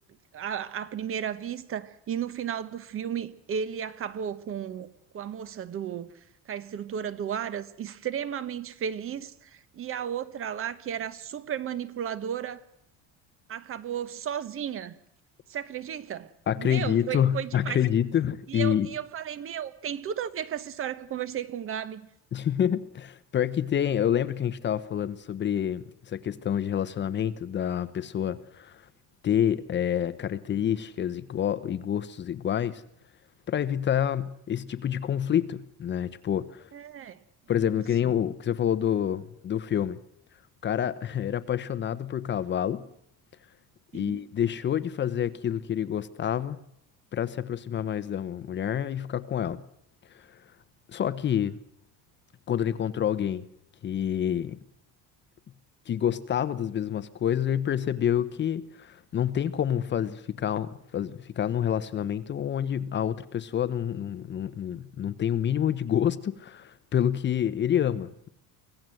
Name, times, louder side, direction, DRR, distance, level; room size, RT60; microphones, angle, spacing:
voice 1, 0.3-4.9 5.1-6.1 6.5-12.6 13.5-15.0 15.5-16.3 16.6-17.8 18.5-22.1 36.7-37.2 37.7-38.1 43.9-44.2, right 8 dB, 35° right, 1.2 m, -34 dB
voice 2, 16.5-18.9 22.3-28.9 29.2-32.8 33.5-36.6 37.5-40.0 40.6-42.8 43.9-46.6 47.1-49.6 50.1-50.4 50.9-51.6 52.5-53.4 53.8-54.6 55.9-68.3, left 9 dB, 30° left, 0.9 m, -28 dB
25.0 x 17.0 x 7.8 m
cardioid pair, 155°, 36 cm